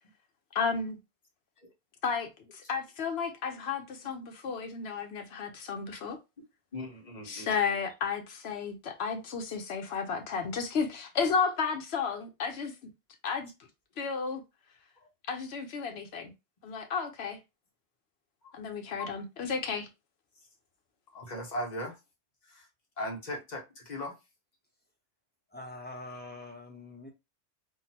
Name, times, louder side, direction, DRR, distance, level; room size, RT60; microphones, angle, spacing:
voice 1, 0.5-1.0 2.0-6.2 7.2-12.9 13.2-13.5 14.0-14.4 15.3-16.3 16.6-17.4 18.5-19.9, left 5 dB, 65° left, 0.9 m, -33 dB
voice 2, 6.7-7.5 18.4-18.5 21.1-21.9 22.5-22.6 23.0-24.1, equal, 40° left, 1.1 m, -38 dB
voice 3, 25.5-27.1, left 2 dB, 10° left, 0.6 m, -44 dB
3.7 x 2.1 x 2.8 m
omnidirectional pair, 1.2 m